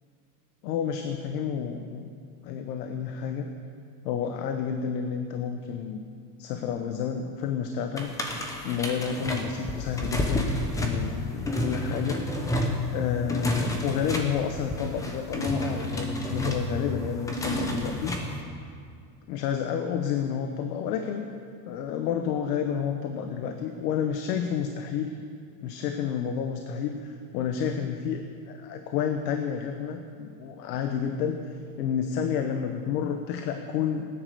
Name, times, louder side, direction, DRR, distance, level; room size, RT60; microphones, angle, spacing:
voice 1, 0.6-2.1 2.4-3.5 4.0-6.0 6.4-8.2 8.6-10.5 10.8-12.2 12.9-18.2 19.3-21.3 21.7-25.1 25.6-31.4 31.8-34.1, left 7 dB, 70° left, 6 dB, 1.2 m, -30 dB
sound 1, 8.0-18.4, left 1 dB, 5° left, 0.7 m, -30 dB
17.0 x 10.0 x 6.8 m, 2.2 s
supercardioid pair, 175°, 49 cm